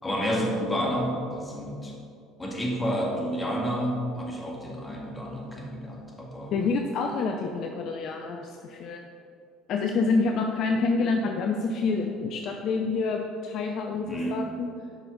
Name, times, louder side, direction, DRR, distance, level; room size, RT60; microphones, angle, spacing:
voice 1, 0.0-2.0 2.4-6.6 14.0-14.5, equal, 20° left, -1 dB, 2.1 m, -30 dB
voice 2, 6.5-9.0 9.7-14.7, left 4 dB, 50° left, 3 dB, 0.6 m, -27 dB
11.0 x 5.8 x 3.8 m, 2.4 s
figure-of-eight pair, 60°, 0 cm